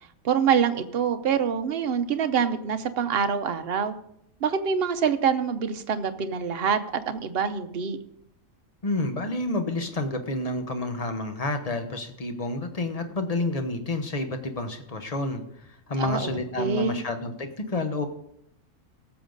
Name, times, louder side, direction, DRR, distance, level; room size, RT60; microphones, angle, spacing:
voice 1, 0.2-3.9 4.4-8.0 16.0-17.0, right 7 dB, 50° right, 9 dB, 0.9 m, -25 dB
voice 2, 8.8-18.1, left 2 dB, 30° left, 7 dB, 1.0 m, -29 dB
17.5 x 7.1 x 3.9 m, 0.74 s
omnidirectional pair, 1.5 m